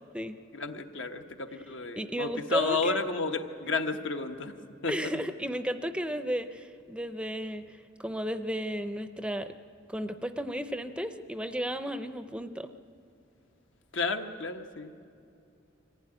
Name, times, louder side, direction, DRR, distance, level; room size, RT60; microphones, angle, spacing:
voice 1, 0.5-4.5 4.8-4.9 13.9-14.9, left 4 dB, 70° left, 5 dB, 1.2 m, -32 dB
voice 2, 2.0-3.0 3.6-3.8 4.9-9.5 9.9-12.7, equal, 5° right, 9 dB, 0.6 m, -34 dB
23.5 x 15.5 x 9.9 m, 2.6 s
head